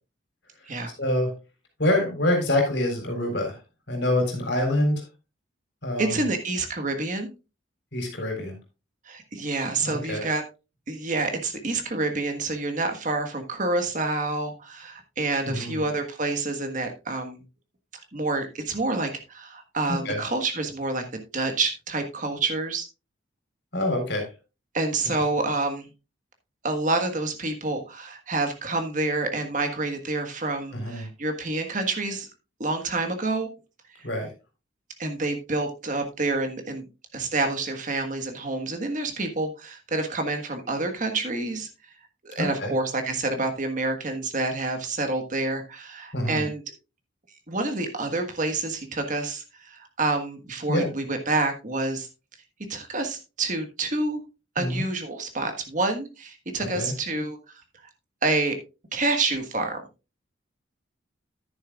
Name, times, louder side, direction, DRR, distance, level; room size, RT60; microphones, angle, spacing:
voice 1, 1.0-1.3 1.8-3.5 3.9-5.0 5.8-6.3 7.9-8.5 9.8-10.2 15.5-15.8 20.1-20.2 23.7-24.3 25.0-25.2 30.7-31.1 34.0-34.3 42.4-42.7 46.1-46.5 50.7-50.9 54.6-54.8 56.7-56.9, left 1 dB, 60° left, 3 dB, 3.8 m, -26 dB
voice 2, 6.0-7.3 9.0-10.4 10.9-17.4 18.1-22.8 24.7-25.9 26.6-32.3 32.6-33.5 34.0-34.1 35.0-36.8 37.1-41.7 42.2-46.6 47.5-52.1 52.7-54.2 54.5-57.4 58.2-58.6 58.9-59.8, right 3 dB, 40° right, 6 dB, 1.5 m, -28 dB
10.5 x 9.9 x 2.4 m, 0.29 s
head